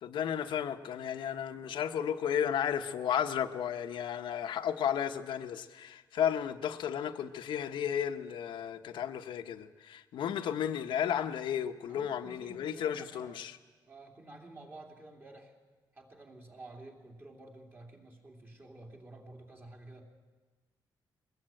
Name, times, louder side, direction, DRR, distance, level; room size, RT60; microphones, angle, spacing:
voice 1, 0.0-13.6, left 9 dB, 80° left, 1.1 m, -33 dB
voice 2, 11.9-13.4 13.9-15.6 15.9-20.1, right 2 dB, 25° right, 3.1 m, -51 dB
22.5 x 20.0 x 9.0 m
wide cardioid pair, 175°, 8 cm